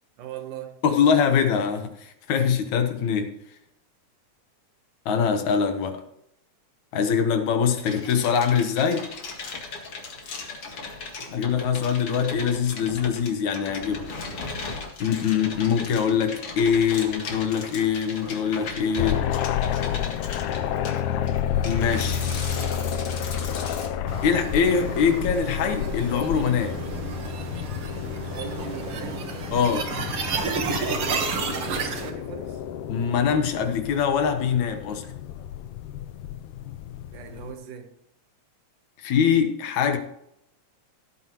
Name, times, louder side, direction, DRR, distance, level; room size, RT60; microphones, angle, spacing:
voice 1, 0.2-0.8 1.1-1.2 28.3-29.3 31.5-32.6 37.1-37.9, right 8 dB, 85° right, 2.8 m, -39 dB
voice 2, 0.8-3.3 5.1-6.0 6.9-9.1 11.3-14.1 15.0-19.2 21.6-22.2 24.2-26.8 29.5-29.9 32.9-35.1 39.0-40.0, left 7 dB, 70° left, 2.5 m, -23 dB
sound 1, 7.8-23.9, left 3 dB, 50° left, 2.6 m, -37 dB
sound 2, 19.0-37.5, left 9 dB, 90° left, 2.2 m, -30 dB
sound 3, 24.1-32.1, right 5 dB, 55° right, 2.0 m, -31 dB
17.0 x 8.9 x 3.1 m
omnidirectional pair, 3.5 m